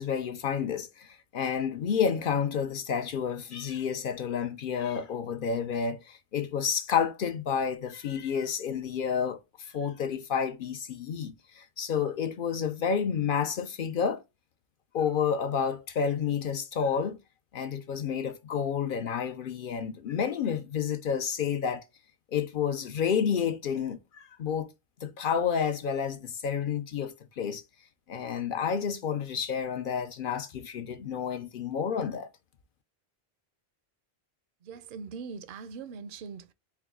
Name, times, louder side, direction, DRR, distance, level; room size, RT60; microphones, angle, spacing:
voice 1, 0.0-14.2 14.9-17.2 17.5-21.8 22.3-24.7 25.0-27.6 28.1-32.3, left 7 dB, 60° left, 0.6 m, -30 dB
voice 2, 34.6-36.5, right 5 dB, 60° right, 0.6 m, -41 dB
4.5 x 2.3 x 3.5 m
omnidirectional pair, 1.1 m